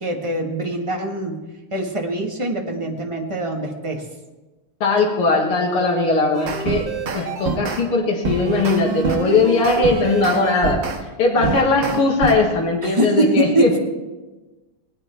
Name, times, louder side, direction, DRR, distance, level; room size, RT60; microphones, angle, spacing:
voice 1, 0.0-1.4 1.7-4.0 11.4-11.6 12.8-13.8, right 1 dB, 15° right, 1 dB, 1.3 m, -23 dB
voice 2, 4.8-6.8 7.1-10.8 11.2-13.7, left 3 dB, 85° left, 0 dB, 2.7 m, -19 dB
sound 1, 6.3-7.8 8.2-11.0 11.4-12.4, right 5 dB, 60° right, 1.9 m, -26 dB
20.0 x 9.3 x 4.5 m, 1.2 s
omnidirectional pair, 2.4 m